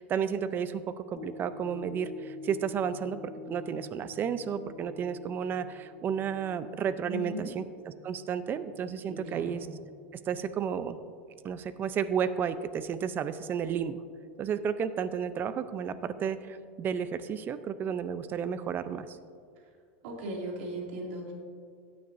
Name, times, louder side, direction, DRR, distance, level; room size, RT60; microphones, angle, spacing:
voice 1, 0.0-9.7 10.1-11.0 11.4-14.0 14.4-19.2, right 7 dB, 30° right, 12 dB, 0.5 m, -32 dB
sound 1, 1.2-9.6 10.1-10.2, left 4 dB, 60° left, 0.6 m, -48 dB
voice 2, 7.0-7.5 9.1-9.6 20.0-21.3, right 1 dB, 70° right, 0 dB, 2.4 m, -37 dB
17.0 x 9.4 x 2.6 m, 2.2 s
supercardioid pair, 120°, 6 cm